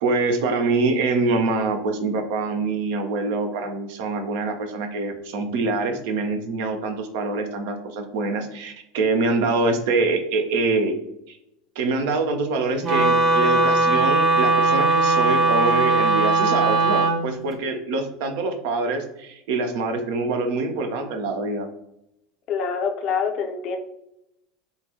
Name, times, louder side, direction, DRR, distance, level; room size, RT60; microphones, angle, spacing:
voice 1, 0.0-11.0 11.3-11.4 11.7-21.7, right 3 dB, 55° right, 5 dB, 0.7 m, -25 dB
Wind instrument woodwind instrument, 12.8-17.2, right 3 dB, 35° right, 1.1 m, -19 dB
voice 2, 22.5-23.8, left 6 dB, 45° left, 4 dB, 0.7 m, -25 dB
6.7 x 2.6 x 2.8 m, 0.83 s
figure-of-eight pair, 75°, 0 cm